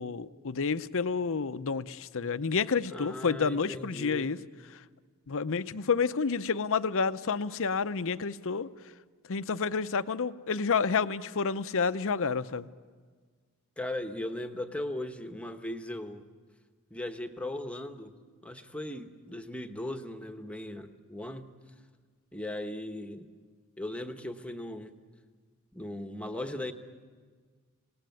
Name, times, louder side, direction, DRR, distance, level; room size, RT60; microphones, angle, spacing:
voice 1, 0.0-4.4 4.7-4.8 5.3-8.7 9.3-12.7, left 5 dB, 65° left, 12 dB, 0.7 m, -29 dB
voice 2, 2.9-4.3 13.8-16.2 16.9-18.1 18.4-21.5 22.3-23.3 23.8-25.0 25.7-26.7, left 1 dB, 5° left, 7 dB, 1.2 m, -38 dB
26.5 x 18.5 x 9.3 m, 1.6 s
head